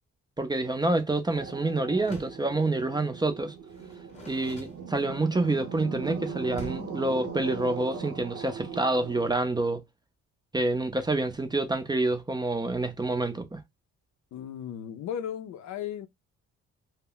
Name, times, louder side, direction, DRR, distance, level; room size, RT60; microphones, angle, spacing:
voice 1, 0.4-3.5 4.3-9.8 10.5-13.6, right 2 dB, 15° right, 0.5 m, -27 dB
sound 1, 1.3-9.3, right 6 dB, 55° right, 0.8 m, -39 dB
Door, 2.0-2.5 3.7-5.3 6.5-7.0, left 3 dB, 20° left, 0.9 m, -46 dB
voice 2, 14.3-16.1, left 9 dB, 65° left, 0.5 m, -35 dB
2.1 x 2.1 x 3.6 m
cardioid pair, 90°, 30 cm